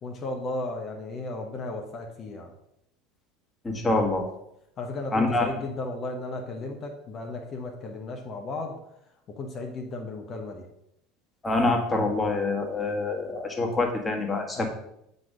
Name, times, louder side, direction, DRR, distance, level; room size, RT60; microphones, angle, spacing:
voice 1, 0.0-2.5 4.8-8.7 9.3-10.6 14.5-14.6, left 2 dB, 40° left, 2 dB, 1.1 m, -35 dB
voice 2, 3.6-4.2 5.1-5.5 11.4-14.6, left 2 dB, 15° left, 1 dB, 1.7 m, -25 dB
7.6 x 4.0 x 5.1 m, 0.79 s
figure-of-eight pair, 75°, 0 cm